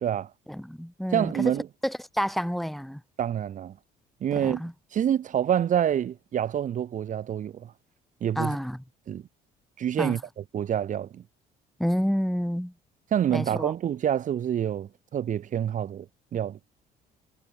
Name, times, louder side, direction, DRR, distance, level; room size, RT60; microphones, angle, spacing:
voice 1, 0.5-1.5 1.8-3.0 4.3-4.7 8.4-8.8 10.0-10.2 11.8-12.7 13.3-13.7, equal, ahead, 4.4 m, -29 dB
voice 2, 1.1-1.7 3.2-3.8 4.2-4.6 4.9-7.7 8.2-8.6 9.1-9.2 9.8-11.2 13.1-16.1 16.3-16.6, right 9 dB, 50° right, 1.5 m, -27 dB
cardioid pair, 110°, 17 cm